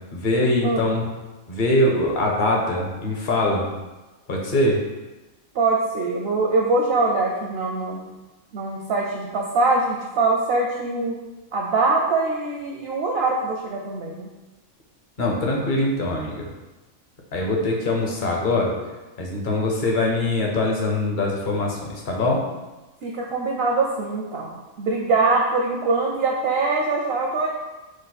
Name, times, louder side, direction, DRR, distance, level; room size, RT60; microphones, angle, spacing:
voice 1, 0.1-1.0 1.5-3.7 4.3-4.8 15.2-16.5 17.3-18.7 19.2-21.8 22.1-22.4, left 2 dB, 45° left, -1 dB, 0.8 m, -22 dB
voice 2, 0.6-0.9 5.5-8.0 8.5-11.1 11.5-14.3 23.0-27.5, right 3 dB, 65° right, -1 dB, 0.6 m, -23 dB
5.0 x 2.1 x 4.0 m, 1.1 s
omnidirectional pair, 1.4 m